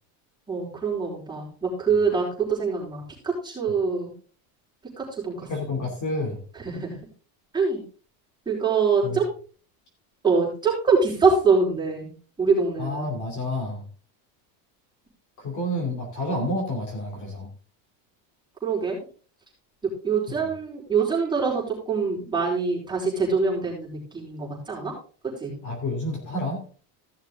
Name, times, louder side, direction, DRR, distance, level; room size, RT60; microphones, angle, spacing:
voice 1, 0.5-4.1 5.0-5.5 6.6-7.0 7.5-7.8 8.5-9.3 10.2-12.1 12.4-13.1 18.6-19.0 20.0-24.9 25.4-25.5, right 5 dB, 10° right, -5 dB, 4.5 m, -24 dB
voice 2, 5.5-6.4 9.0-9.2 12.8-13.8 15.4-17.5 20.4-20.5 25.6-26.6, left 1 dB, 35° left, 2 dB, 2.9 m, -29 dB
15.0 x 6.5 x 3.7 m, 0.40 s
cardioid pair, 155°, 49 cm